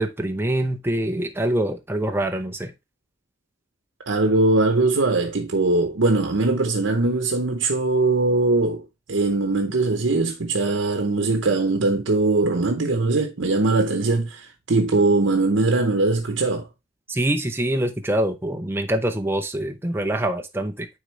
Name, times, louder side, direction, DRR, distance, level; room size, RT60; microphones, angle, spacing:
voice 1, 0.0-2.7 17.1-20.9, right 1 dB, 10° right, 0.6 m, -25 dB
voice 2, 4.0-16.7, right 3 dB, 80° right, 0.8 m, -21 dB
9.6 x 3.8 x 3.2 m
head